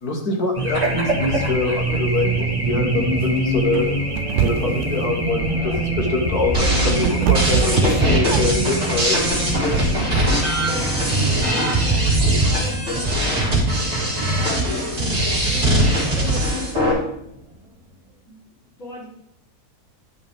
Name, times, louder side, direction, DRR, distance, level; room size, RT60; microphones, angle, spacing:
voice 1, 0.0-3.9 4.4-9.2, left 3 dB, 80° left, 1 dB, 1.9 m, -24 dB
Race car auto racing / Alarm, 0.5-17.5, right 1 dB, 20° right, 1.6 m, -26 dB
sound 1, 4.2-4.9 6.4-8.7, right 10 dB, 65° right, 0.7 m, -23 dB
sound 2, 6.5-16.9, right 1 dB, 50° right, 3.1 m, -20 dB
voice 2, 10.7-13.5 14.1-17.0 18.3-18.4 18.8-19.1, left 2 dB, 60° left, -7 dB, 3.9 m, -36 dB
10.0 x 5.5 x 3.5 m, 0.72 s
omnidirectional pair, 1.6 m